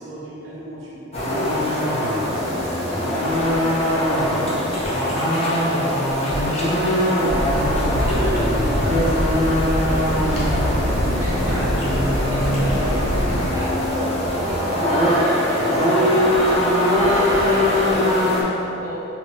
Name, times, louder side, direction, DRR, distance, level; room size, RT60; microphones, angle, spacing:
voice 1, 0.0-2.7 3.1-3.6 4.0-5.1 8.0-9.2, equal, 70° right, -9 dB, 0.9 m, -32 dB
sound 1, 1.1-18.4, left 1 dB, 30° left, 0.6 m, -21 dB
sound 2, 7.3-13.5, equal, 80° left, 0.9 m, -23 dB
voice 2, 11.2-16.2 16.9-19.0, equal, 15° right, -8 dB, 0.6 m, -34 dB
3.0 x 2.6 x 2.9 m, 3.0 s
head